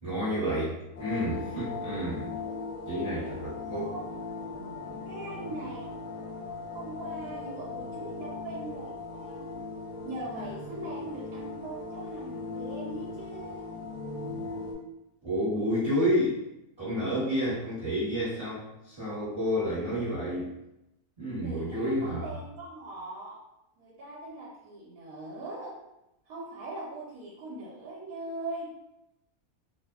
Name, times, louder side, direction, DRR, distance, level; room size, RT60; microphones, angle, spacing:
voice 1, 0.0-2.3 2.9-3.8 15.2-16.4 16.8-20.5 21.2-22.3, equal, 30° right, -12 dB, 0.9 m, -30 dB
sound 1, 0.9-14.7, left 3 dB, 65° left, 0.8 m, -38 dB
voice 2, 3.7-4.0 5.1-5.9 6.7-9.5 10.0-13.7 21.4-23.4 23.8-25.7 26.3-28.7, right 2 dB, 75° right, -5 dB, 1.0 m, -41 dB
2.7 x 2.0 x 2.2 m, 0.89 s
omnidirectional pair, 1.6 m